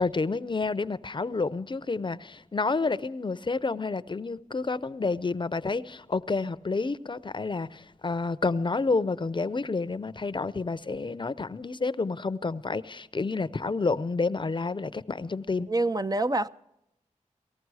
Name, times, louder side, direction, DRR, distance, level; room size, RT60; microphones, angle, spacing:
voice 1, 0.0-15.7, left 3 dB, 40° left, 0.6 m, -29 dB
voice 2, 15.7-16.5, right 2 dB, 30° right, 0.5 m, -26 dB
19.0 x 14.0 x 4.8 m
cardioid pair, 45°, 13 cm